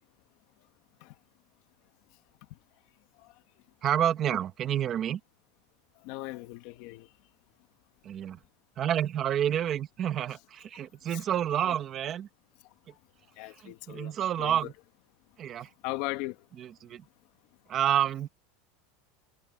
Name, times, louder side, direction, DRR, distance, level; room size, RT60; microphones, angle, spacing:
voice 1, 3.8-5.2 8.0-8.4 8.8-12.3 13.6-14.7 15.4-15.7 16.6-17.0 17.7-18.3, right 10 dB, 25° right, 1.3 m, -29 dB
voice 2, 6.0-7.1 11.1-11.2 11.6-11.7 12.9-13.0 13.4-14.6 15.8-16.4, left 20 dB, 50° left, 1.4 m, -38 dB
supercardioid pair, 170°, 0 cm